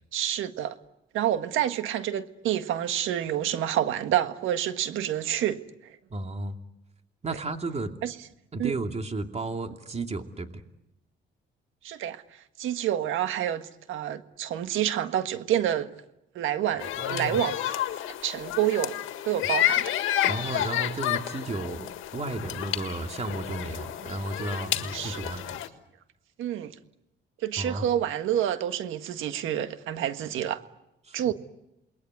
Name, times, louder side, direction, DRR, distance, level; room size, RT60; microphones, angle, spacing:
voice 1, 0.1-0.7 1.1-6.0 8.0-8.1 8.6-8.7 11.8-15.9 16.3-17.7 18.2-19.0 19.2-19.9 24.9-25.2 26.4-26.7 27.4-30.6 31.1-31.3, right 11 dB, 85° right, 1.6 m, -28 dB
voice 2, 6.1-6.6 7.2-7.9 8.5-10.6 17.0-17.4 20.2-25.6 27.6-27.9 31.0-31.3, right 2 dB, 35° right, 2.6 m, -33 dB
sound 1, 16.8-25.7, left 12 dB, 85° left, 1.8 m, -30 dB
28.5 x 21.0 x 9.6 m
cardioid pair, 90°, 20 cm